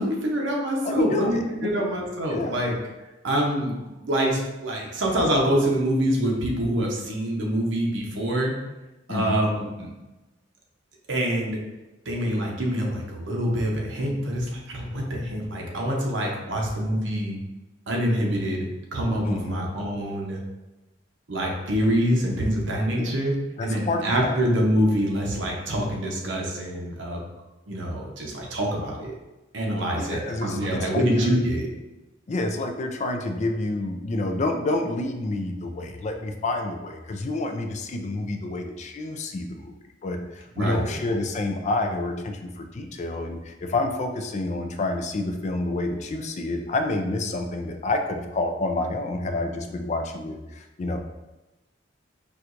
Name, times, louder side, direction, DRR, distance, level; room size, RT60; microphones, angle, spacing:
voice 1, 0.0-2.7 3.2-8.5 9.1-9.9 11.1-11.6 12.1-17.4 17.9-20.4 21.3-23.4 23.6-27.2 27.7-29.1 29.5-31.7 40.6-41.0, equal, 70° right, -1 dB, 0.7 m, -25 dB
voice 2, 0.8-1.9 2.3-2.6 9.1-9.4 19.2-19.6 23.0-23.1 23.6-24.4 29.9-31.4 32.3-39.7 40.0-51.0, left 2 dB, 35° left, 5 dB, 0.3 m, -28 dB
4.4 x 2.3 x 2.5 m, 1.1 s
head